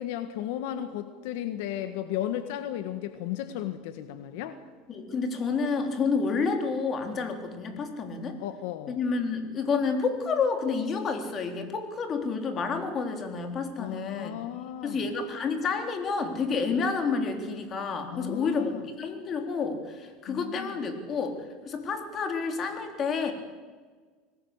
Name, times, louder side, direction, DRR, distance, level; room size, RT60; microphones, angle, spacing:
voice 1, 0.0-4.6 8.4-9.0 13.8-15.1 18.1-18.8 20.3-20.7, left 11 dB, 75° left, 10 dB, 1.6 m, -34 dB
voice 2, 4.9-8.4 8.9-14.3 14.8-18.7 19.0-21.4 21.7-23.3, left 5 dB, 35° left, 5 dB, 3.9 m, -29 dB
25.5 x 19.0 x 8.2 m, 1.5 s
supercardioid pair, 125°, 0 cm